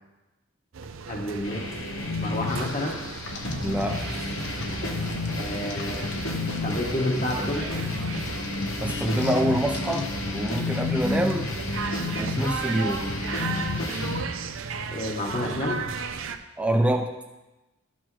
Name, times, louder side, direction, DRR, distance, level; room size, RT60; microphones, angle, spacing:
sound 1, 0.7-16.4, right 5 dB, 75° right, 0.5 m, -36 dB
voice 1, 1.1-1.7 2.2-3.0 5.4-6.1 6.6-7.7 14.9-15.9, left 1 dB, 35° left, 0 dB, 1.1 m, -29 dB
sound 2, 1.4-14.2, left 2 dB, 80° left, 1.1 m, -31 dB
sound 3, 3.3-3.8 4.4-6.9 7.3-9.4 9.7-10.0 10.5-10.6, left 3 dB, 55° left, 0.9 m, -40 dB
voice 2, 3.6-4.0 8.8-11.5 12.2-13.1 16.6-17.1, right 1 dB, 5° right, 3 dB, 0.6 m, -26 dB
12.0 x 6.1 x 3.1 m, 1.0 s
head